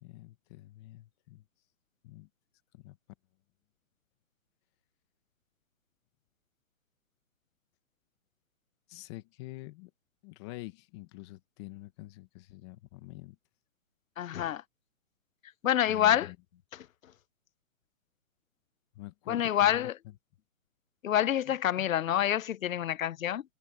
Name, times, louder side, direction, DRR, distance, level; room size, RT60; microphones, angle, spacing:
voice 1, 0.0-1.4 2.0-2.3 2.7-3.0 8.9-9.9 10.2-13.4 15.9-16.3 18.9-20.1 21.5-21.6, left 18 dB, 20° left, 1.5 m, -46 dB
voice 2, 14.2-14.6 15.6-16.3 16.7-16.9 19.3-19.9 21.0-23.4, left 11 dB, 75° left, 0.8 m, -27 dB
hypercardioid pair, 165°, 40 cm